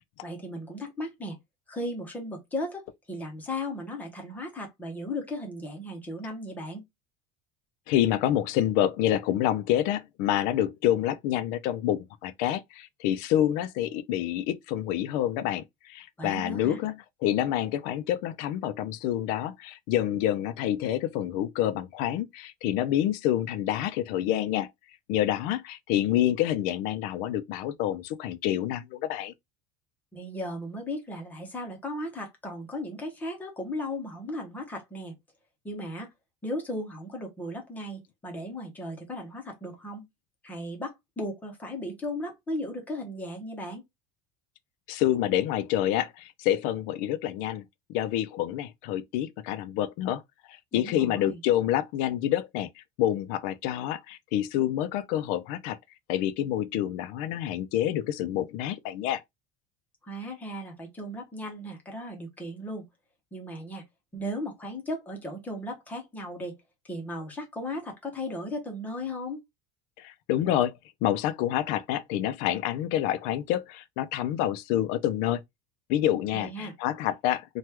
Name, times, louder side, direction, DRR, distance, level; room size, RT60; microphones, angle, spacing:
voice 1, 0.2-1.4 1.7-6.8 16.2-16.8 30.1-35.2 35.6-36.1 36.4-40.1 40.4-43.8 50.7-51.4 60.1-62.9 63.3-63.8 64.1-66.5 66.8-69.4 76.3-76.7, left 1 dB, 10° left, 0.7 m, -36 dB
voice 2, 7.9-24.7 25.1-29.3 44.9-50.2 50.5-55.8 56.1-59.2 70.0-70.7 71.0-75.4 75.9-77.6, left 12 dB, 55° left, 0.4 m, -27 dB
3.0 x 2.3 x 3.2 m
cardioid pair, 175°, 17 cm